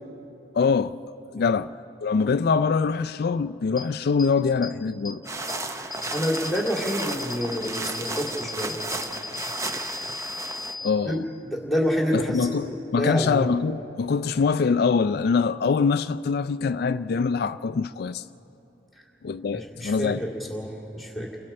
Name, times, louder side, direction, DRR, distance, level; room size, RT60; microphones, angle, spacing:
voice 1, 0.5-1.0 1.3-1.7 2.0-5.2 10.8-11.2 12.1-18.2 19.2-20.2, left 5 dB, 60° left, 0.4 m, -24 dB
sound 1, 3.8-3.9 4.2-4.3 4.6-4.7 5.1-5.2 5.5-5.6 5.9-10.9, left 4 dB, 20° left, 1.3 m, -36 dB
sound 2, 5.2-10.8, right 2 dB, 15° right, 0.7 m, -34 dB
voice 2, 5.7-8.8 11.0-11.2 11.4-13.5 18.9-19.0 19.5-21.4, equal, ahead, 2.3 m, -28 dB
29.5 x 23.0 x 4.3 m
head